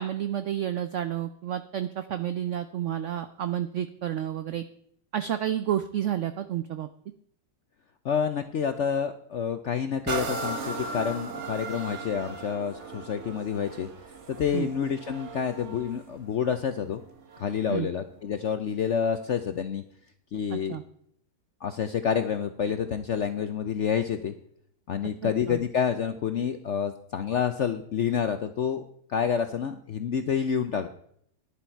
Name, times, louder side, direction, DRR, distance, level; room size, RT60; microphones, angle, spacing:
voice 1, 0.0-4.7 5.1-6.9 14.5-14.7 17.7-17.9 20.5-20.8 25.2-25.6, right 10 dB, 75° right, 11 dB, 0.6 m, -30 dB
voice 2, 8.0-13.9 14.3-17.0 17.4-19.8 20.3-20.8 21.6-24.3 24.9-30.9, left 7 dB, 65° left, 9 dB, 0.7 m, -28 dB
sound 1, 10.1-17.7 18.3-18.4, right 3 dB, 45° right, 1.3 m, -37 dB
11.0 x 10.5 x 4.5 m, 0.65 s
omnidirectional pair, 1.9 m